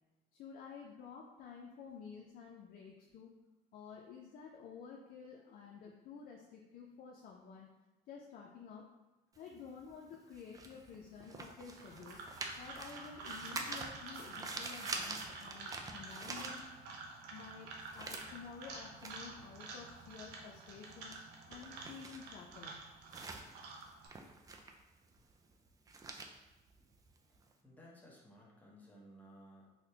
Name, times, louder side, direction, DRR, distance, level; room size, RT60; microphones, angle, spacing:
voice 1, 0.3-3.3 3.7-7.7 8.1-8.9 9.4-12.2 12.6-16.6 17.3-21.2 21.5-22.8, left 6 dB, 60° left, -1 dB, 0.4 m, -51 dB
sound 1, 9.3-17.1 17.4-27.5, right 3 dB, 20° right, 0.3 m, -47 dB
sound 2, 11.7-24.1, right 3 dB, 90° right, 0.6 m, -49 dB
voice 2, 27.6-29.7, equal, 10° left, -4 dB, 0.9 m, -58 dB
4.1 x 2.1 x 2.8 m, 1.1 s
cardioid pair, 110°, 17 cm